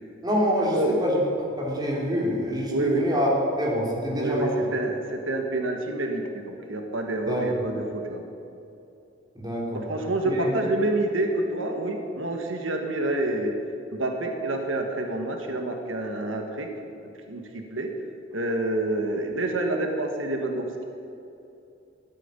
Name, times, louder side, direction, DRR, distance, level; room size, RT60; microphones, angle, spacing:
voice 1, 0.2-3.3 3.6-4.5 7.3-7.4 9.3-9.8 10.2-10.5, equal, 20° right, -2 dB, 3.2 m, -26 dB
voice 2, 2.7-3.0 4.2-8.2 9.7-13.5 13.9-16.7 17.3-17.9 18.3-20.8, right 2 dB, 90° right, 4 dB, 1.6 m, -28 dB
14.0 x 9.4 x 9.7 m, 2.7 s
head